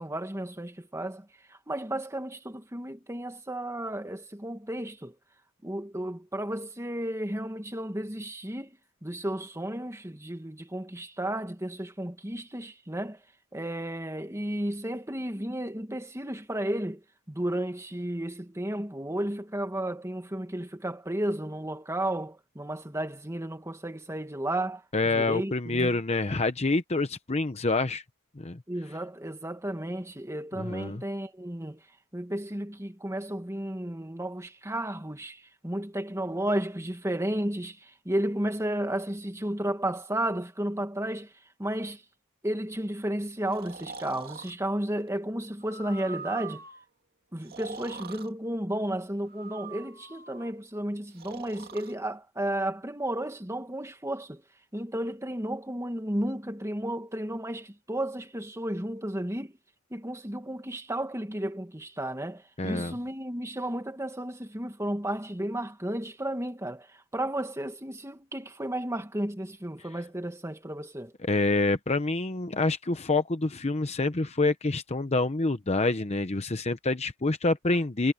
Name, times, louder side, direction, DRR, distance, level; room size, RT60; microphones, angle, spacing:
voice 1, 0.0-5.1 5.6-13.2 13.5-26.0 28.7-31.8 32.1-41.3 41.6-42.0 42.4-46.6 47.3-54.4 54.7-59.6 59.9-71.1, right 1 dB, 15° right, 2.1 m, -33 dB
voice 2, 24.9-28.0 28.4-28.6 30.6-31.0 62.6-62.9 71.3-78.1, left 3 dB, 30° left, 0.8 m, -27 dB
Breathing, 43.5-44.5 45.6-46.8 47.4-48.3 49.3-50.5 51.1-51.9, right 5 dB, 45° right, 2.3 m, -43 dB
head